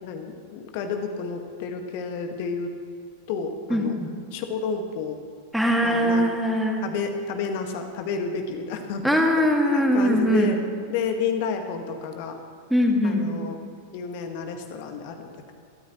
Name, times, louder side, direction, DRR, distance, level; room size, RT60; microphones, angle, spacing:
voice 1, 0.0-2.7 3.3-4.0 4.3-5.2 5.8-6.4 6.8-9.0 9.6-10.6 10.9-12.4 13.0-13.6 13.9-15.5, left 5 dB, 50° left, 5 dB, 1.8 m, -30 dB
voice 2, 3.7-4.1 5.5-6.8 9.0-10.5 12.7-13.3, equal, ahead, 1 dB, 2.2 m, -21 dB
23.5 x 13.0 x 3.2 m, 2.4 s
figure-of-eight pair, 90°, 0 cm